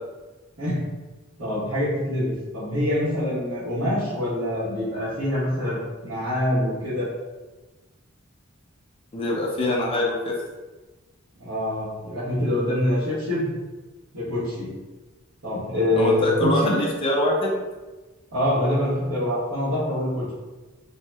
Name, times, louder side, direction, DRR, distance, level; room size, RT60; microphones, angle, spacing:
voice 1, 1.4-7.1 11.4-13.5 14.1-14.7 15.4-16.8 18.3-20.3, left 1 dB, 75° right, -13 dB, 1.0 m, -25 dB
voice 2, 9.1-10.3 16.0-17.5, left 1 dB, 25° left, -3 dB, 0.4 m, -24 dB
2.6 x 2.1 x 3.3 m, 1.2 s
head